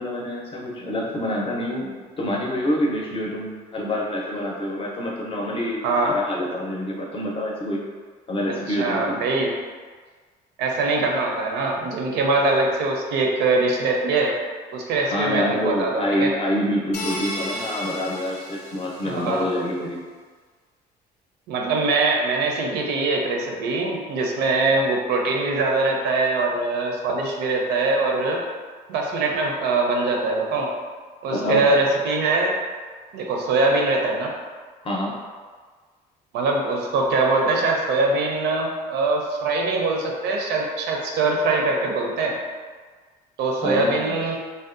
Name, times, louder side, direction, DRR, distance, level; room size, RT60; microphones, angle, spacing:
voice 1, 0.0-7.8 8.3-9.2 15.0-20.0 31.3-31.8 34.8-35.1 43.6-44.4, left 1 dB, 35° left, -3 dB, 0.6 m, -27 dB
voice 2, 8.5-9.6 10.6-14.4 14.7-16.3 19.1-19.4 21.5-28.4 28.9-30.7 31.2-32.6 33.1-34.3 36.3-42.4 43.4-44.4, right 3 dB, 80° right, 0 dB, 0.5 m, -22 dB
sound 1, 16.9-19.4, left 1 dB, 75° left, 0.6 m, -33 dB
2.5 x 2.1 x 2.5 m, 1.5 s
cardioid pair, 110°, 17 cm